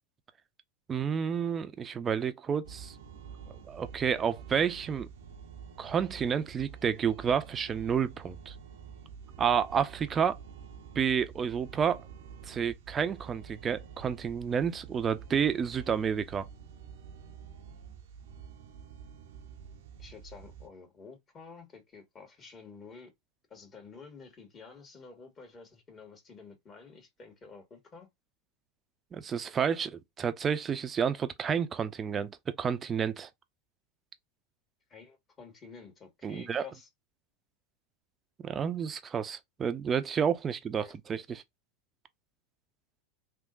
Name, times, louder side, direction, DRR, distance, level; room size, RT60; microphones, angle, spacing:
voice 1, 0.9-2.9 3.7-5.1 5.8-8.5 9.4-10.4 11.0-12.0 12.5-16.5 29.1-33.3 36.2-36.6 38.4-41.4, right 7 dB, 25° right, 0.6 m, -30 dB
sound 1, 2.6-20.7, right 7 dB, 70° right, 0.7 m, -48 dB
voice 2, 20.0-23.1 23.5-28.1 34.9-36.9 40.8-41.0, left 5 dB, 30° left, 1.8 m, -50 dB
3.5 x 2.9 x 2.5 m
hypercardioid pair, 90°, 0 cm